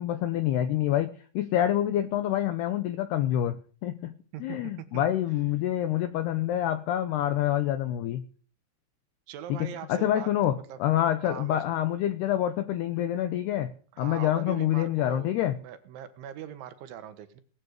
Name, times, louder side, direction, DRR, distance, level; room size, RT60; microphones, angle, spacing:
voice 1, 0.0-4.1 4.4-8.2 9.5-15.6, left 12 dB, 85° left, 11 dB, 2.3 m, -27 dB
voice 2, 4.3-5.0 9.3-10.3 10.7-10.8 11.2-11.6 13.9-15.3 15.6-17.4, right 10 dB, 75° right, 11 dB, 3.5 m, -41 dB
19.0 x 10.5 x 6.6 m, 0.42 s
omnidirectional pair, 5.9 m